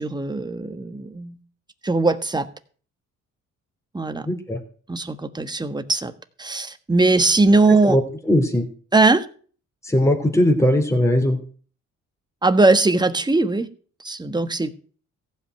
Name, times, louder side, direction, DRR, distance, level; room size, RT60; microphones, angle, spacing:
voice 1, 0.0-1.4 1.8-2.5 3.9-4.3 4.9-6.1 6.4-8.0 8.9-9.2 12.4-13.7 14.0-14.7, right 3 dB, 15° right, 1.4 m, -20 dB
voice 2, 4.2-4.6 7.7-8.7 9.8-11.4, left 1 dB, 10° left, 2.8 m, -19 dB
15.5 x 5.5 x 9.1 m
cardioid pair, 90°, 30 cm